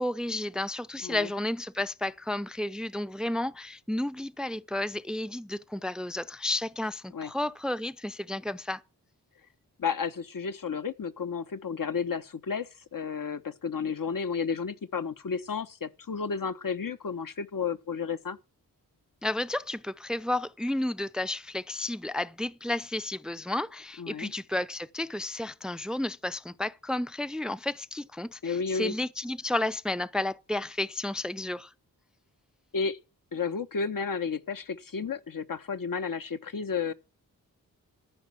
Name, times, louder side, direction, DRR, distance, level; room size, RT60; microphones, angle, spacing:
voice 1, 0.0-8.8 19.2-31.7, left 1 dB, ahead, 0.6 m, -32 dB
voice 2, 9.8-18.4 24.0-24.3 28.4-28.9 32.7-33.0 33.3-36.9, left 5 dB, 55° left, 1.1 m, -32 dB
13.5 x 5.3 x 8.4 m
cardioid pair, 40°, 38 cm